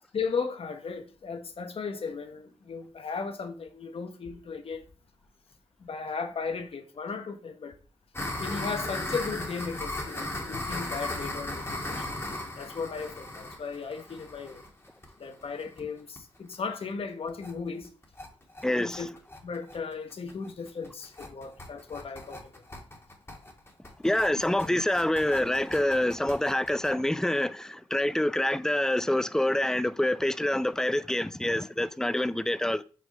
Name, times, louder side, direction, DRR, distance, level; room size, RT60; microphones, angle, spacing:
voice 1, 0.1-4.9 5.8-7.7 8.4-12.1 12.6-14.6 15.2-17.9 18.8-19.1 19.4-22.5, left 5 dB, 60° left, 1.2 m, -36 dB
sound 1, 8.1-15.8 16.2-16.3 16.5-16.6 16.9-17.0 17.3-17.5 17.8-26.9, left 1 dB, 25° left, 1.8 m, -37 dB
voice 2, 18.6-19.1 24.0-32.8, left 1 dB, 5° left, 0.4 m, -26 dB
6.0 x 3.8 x 5.3 m
cardioid pair, 70°, 11 cm